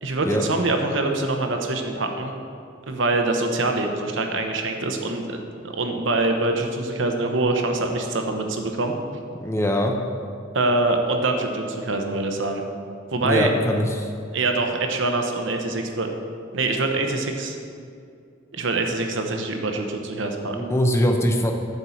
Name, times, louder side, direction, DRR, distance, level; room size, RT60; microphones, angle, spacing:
voice 1, 0.0-2.4 2.9-5.4 5.6-8.9 10.5-12.6 13.1-13.5 14.3-16.1 16.5-17.6 18.5-20.6, right 2 dB, 65° right, 4 dB, 0.9 m, -24 dB
voice 2, 9.4-10.0 13.2-14.1 20.5-21.5, equal, 15° left, 2 dB, 0.6 m, -22 dB
8.1 x 4.6 x 7.0 m, 2.4 s
head